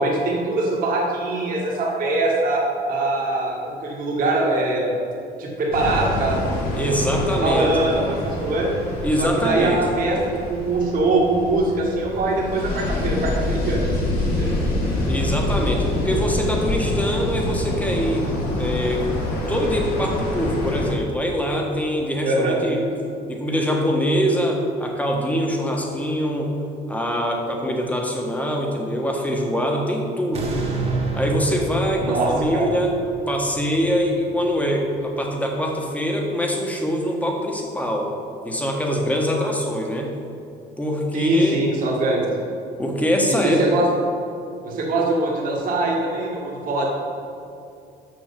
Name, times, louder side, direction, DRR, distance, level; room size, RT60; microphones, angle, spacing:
voice 1, 0.0-4.9 5.4-6.4 7.2-8.8 9.2-14.5 22.2-22.6 32.0-32.7 41.1-42.2 43.3-43.9 44.6-46.9, right 2 dB, 55° right, -4 dB, 1.7 m, -22 dB
sound 1, 5.7-20.9, left 1 dB, 65° left, 2.2 m, -26 dB
voice 2, 6.7-7.9 9.0-9.8 15.1-19.0 19.5-22.8 23.3-26.6 26.9-30.6 31.1-32.9 33.3-38.1 38.4-40.1 40.8-41.6 42.8-43.6, equal, 10° left, 1 dB, 1.4 m, -23 dB
sound 2, 30.3-35.4 35.9-36.0, right 2 dB, 40° right, 1.5 m, -30 dB
6.3 x 6.2 x 6.8 m, 2.5 s
cardioid pair, 110°, 17 cm